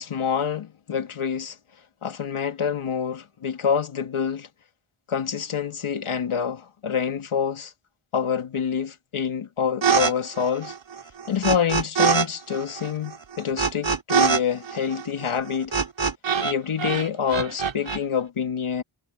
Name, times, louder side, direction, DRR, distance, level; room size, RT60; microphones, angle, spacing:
voice 1, 0.0-1.6 2.0-4.5 5.1-7.7 8.1-10.7 11.3-15.7 16.4-18.8, left 7 dB, 90° left, 2.3 m, -27 dB
sound 1, 9.8-10.1 10.4-12.3 12.5-16.5 16.8-18.0, right 6 dB, 65° right, 2.8 m, -23 dB
wide cardioid pair, 85°, 48 cm